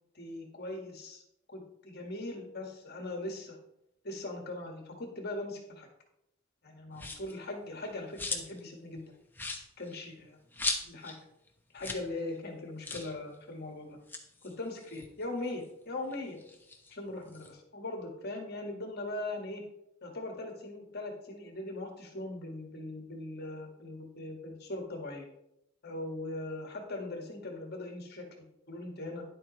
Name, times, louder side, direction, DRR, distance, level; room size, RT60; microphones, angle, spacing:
voice 1, 0.2-1.2 1.5-3.6 4.0-5.9 6.6-9.1 9.8-10.1 10.8-11.1 11.7-14.0 14.4-16.4 16.9-19.6 20.0-25.3 25.8-29.2, left 2 dB, 55° left, 2 dB, 1.9 m, -40 dB
sound 1, 6.9-7.4 7.8-8.7 9.0-9.1 9.3-11.2 11.5-11.6 11.8-12.1 12.4-12.5 12.8-13.2 13.9-15.6 16.1-17.5, left 3 dB, 10° left, 1.0 m, -38 dB
10.5 x 7.8 x 3.2 m, 0.80 s
head